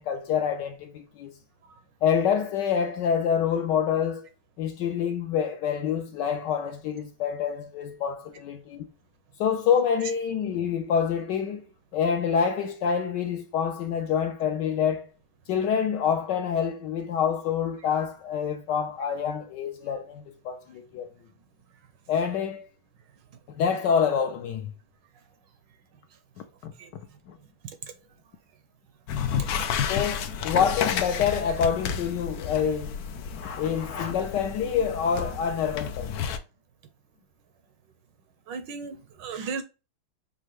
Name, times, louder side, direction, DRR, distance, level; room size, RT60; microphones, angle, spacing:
voice 1, 0.0-1.3 2.0-4.3 4.6-8.9 9.4-11.6 11.9-15.1 15.5-21.1 22.1-22.6 23.5-24.7 26.6-27.0 27.3-27.4 29.9-33.0 33.4-36.3, left 7 dB, 70° left, 1.1 m, -27 dB
sound 1, 29.1-36.4, left 7 dB, 90° left, 0.8 m, -31 dB
voice 2, 29.2-29.6 38.5-39.6, right 5 dB, 75° right, 1.1 m, -36 dB
5.5 x 2.5 x 3.1 m
omnidirectional pair, 2.3 m